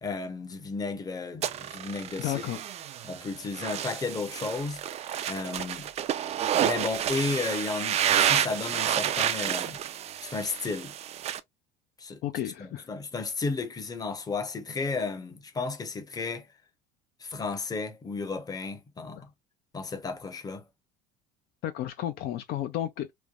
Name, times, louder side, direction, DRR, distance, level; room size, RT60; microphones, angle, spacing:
voice 1, 0.0-2.4 3.0-4.8 5.3-5.9 6.6-9.8 10.2-10.9 12.0-12.2 12.6-16.5 17.2-19.3 19.7-20.6, left 4 dB, 20° left, 0.7 m, -33 dB
sound 1, 1.4-11.4, right 10 dB, 35° right, 0.4 m, -30 dB
voice 2, 2.2-2.6 12.2-12.9 19.2-19.3 21.6-23.1, left 12 dB, 55° left, 0.4 m, -32 dB
3.2 x 2.1 x 2.4 m
supercardioid pair, 110°, 19 cm